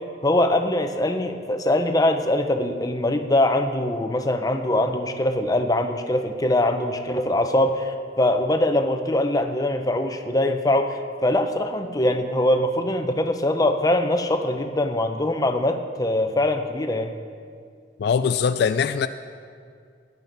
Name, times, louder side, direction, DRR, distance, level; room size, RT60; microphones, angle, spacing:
voice 1, 0.2-17.1, left 1 dB, 20° left, 6 dB, 0.7 m, -22 dB
voice 2, 18.0-19.1, left 6 dB, 60° left, 11 dB, 0.3 m, -21 dB
18.0 x 10.5 x 4.0 m, 2.2 s
head